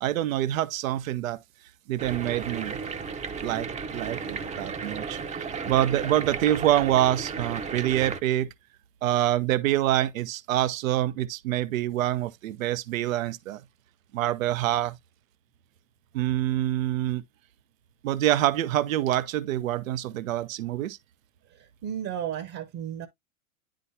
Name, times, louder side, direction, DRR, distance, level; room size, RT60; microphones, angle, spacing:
voice 1, 0.0-1.4 1.9-2.8 3.4-8.5 9.0-13.6 14.1-15.0 16.1-17.2 18.0-21.0, right 13 dB, 70° right, 0.8 m, -26 dB
sound 1, 2.0-8.2, right 5 dB, 15° right, 0.7 m, -34 dB
voice 2, 21.5-23.1, right 9 dB, 40° right, 1.0 m, -34 dB
9.8 x 3.9 x 2.8 m
hypercardioid pair, 100°, 41 cm